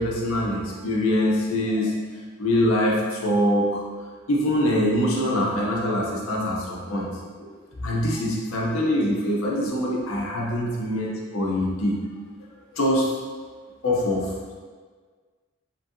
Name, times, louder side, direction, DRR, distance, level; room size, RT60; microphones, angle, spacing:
voice 1, 0.0-1.9 2.4-3.8 4.3-7.1 7.4-7.5 7.8-12.0 12.7-13.1 13.8-14.5, left 1 dB, 80° left, -3 dB, 0.6 m, -24 dB
2.9 x 2.6 x 2.5 m, 1.6 s
head